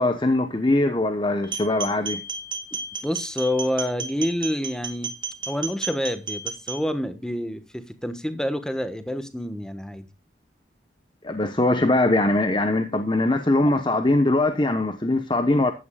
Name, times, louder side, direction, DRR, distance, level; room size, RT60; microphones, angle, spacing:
voice 1, 0.0-2.2 11.2-15.7, left 2 dB, 25° left, 0.9 m, -21 dB
sound 1, 1.4-6.8, right 4 dB, 25° right, 2.3 m, -33 dB
voice 2, 3.0-5.2 5.5-10.0, left 1 dB, 5° left, 1.2 m, -28 dB
15.0 x 11.0 x 2.3 m
head